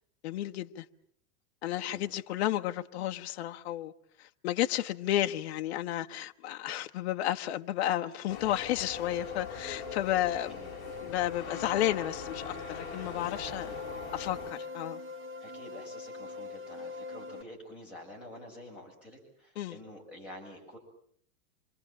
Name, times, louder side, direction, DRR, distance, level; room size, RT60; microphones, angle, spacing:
voice 1, 0.2-0.8 1.6-3.9 4.2-10.5 11.0-13.7 14.1-15.0 19.6-19.8, left 13 dB, 45° left, 1.0 m, -32 dB
sound 1, 8.3-14.5, left 7 dB, 25° left, 3.3 m, -42 dB
sound 2, 8.9-17.4, left 3 dB, 20° right, 1.2 m, -43 dB
voice 2, 13.4-13.8 15.4-20.8, left 1 dB, 5° right, 7.2 m, -48 dB
27.0 x 24.0 x 7.5 m
supercardioid pair, 175°, 43 cm